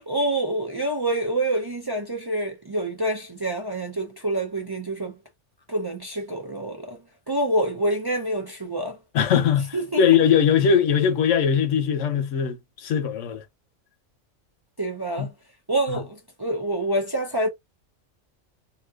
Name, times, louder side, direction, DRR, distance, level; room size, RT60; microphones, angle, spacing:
voice 1, 0.0-5.2 5.7-7.0 7.3-9.0 9.7-10.0 14.8-15.3 15.7-17.5, right 1 dB, 30° right, 0.4 m, -27 dB
voice 2, 9.1-13.4 15.2-15.3 15.9-16.0, left 7 dB, 85° left, 1.1 m, -21 dB
3.8 x 2.7 x 2.3 m
omnidirectional pair, 1.2 m